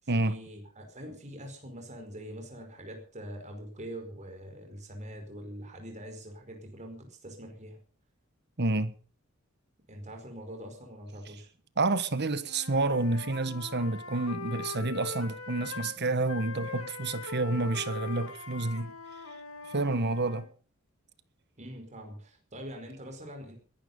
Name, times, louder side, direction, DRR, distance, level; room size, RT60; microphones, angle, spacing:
voice 1, 0.0-7.8 9.9-11.5 21.6-23.6, equal, 35° right, 4.9 m, -44 dB
voice 2, 8.6-8.9 11.8-18.9 19.7-20.5, right 2 dB, 55° right, 1.4 m, -29 dB
Wind instrument woodwind instrument, 12.4-16.0 16.3-20.5, left 4 dB, 85° left, 2.5 m, -42 dB
21.5 x 11.5 x 5.4 m
head